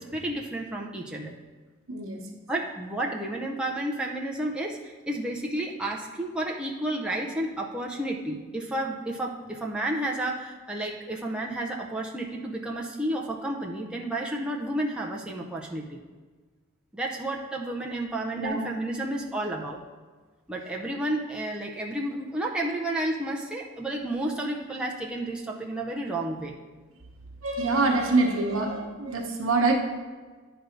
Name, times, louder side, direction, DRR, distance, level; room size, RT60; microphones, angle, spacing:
voice 1, 0.0-1.4 2.5-16.0 16.9-19.8 20.5-26.5, right 1 dB, 5° right, -2 dB, 0.5 m, -31 dB
voice 2, 1.9-2.2 18.4-18.6 27.4-29.7, right 3 dB, 70° right, 2 dB, 1.1 m, -25 dB
10.0 x 3.4 x 5.2 m, 1.4 s
head